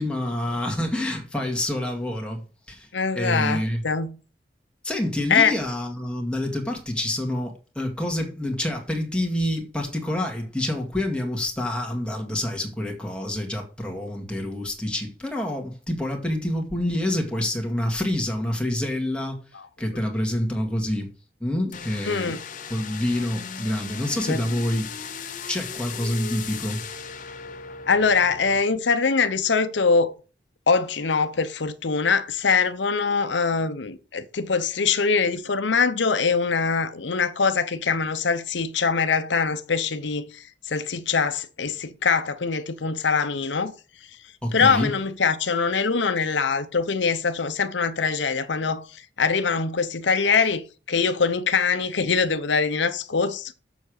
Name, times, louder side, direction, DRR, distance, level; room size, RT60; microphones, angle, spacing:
voice 1, 0.0-2.4 2.7-2.9 3.2-3.8 4.8-19.4 19.8-21.1 21.4-22.4 22.7-24.9 25.5-26.8 44.4-44.9, left 1 dB, 5° left, 2.1 m, -27 dB
voice 2, 2.9-4.2 5.3-5.5 22.1-22.4 24.3-24.4 27.9-30.1 30.7-43.7 44.5-48.9 49.2-53.5, left 5 dB, 80° left, 0.8 m, -23 dB
sound 1, 21.7-28.6, left 6 dB, 45° left, 1.0 m, -37 dB
7.2 x 6.8 x 6.4 m
head